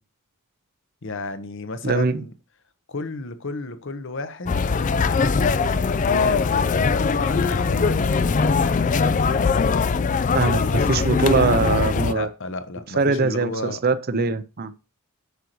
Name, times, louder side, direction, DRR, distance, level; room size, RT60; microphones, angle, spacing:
voice 1, 1.0-2.3 2.9-4.7 6.0-8.6 12.1-13.8, left 3 dB, 60° left, 0.9 m, -32 dB
voice 2, 1.8-2.2 10.3-12.3 13.0-14.7, right 4 dB, 45° right, 0.6 m, -22 dB
sound 1, 4.5-12.1, left 5 dB, 35° left, 0.4 m, -21 dB
8.0 x 6.7 x 3.0 m
head